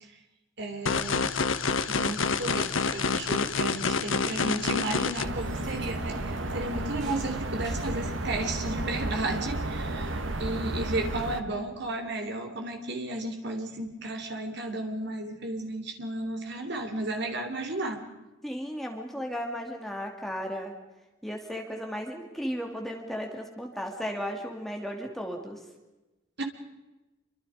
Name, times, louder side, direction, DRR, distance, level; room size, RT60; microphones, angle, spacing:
voice 1, 0.6-1.3 1.8-18.0 26.4-26.5, right 2 dB, 55° right, 4 dB, 3.2 m, -33 dB
sound 1, 0.9-5.2, left 4 dB, 80° left, 1.2 m, -27 dB
sound 2, 4.6-4.7 5.1-6.1 6.4-8.3 9.4-9.5 9.8-10.4, right 1 dB, 40° right, 7.2 m, -49 dB
sound 3, 5.2-11.4, right 2 dB, 70° right, 1.6 m, -32 dB
voice 2, 18.4-20.7 21.2-25.6, equal, ahead, 1 dB, 2.6 m, -35 dB
27.5 x 25.0 x 5.1 m, 1.0 s
head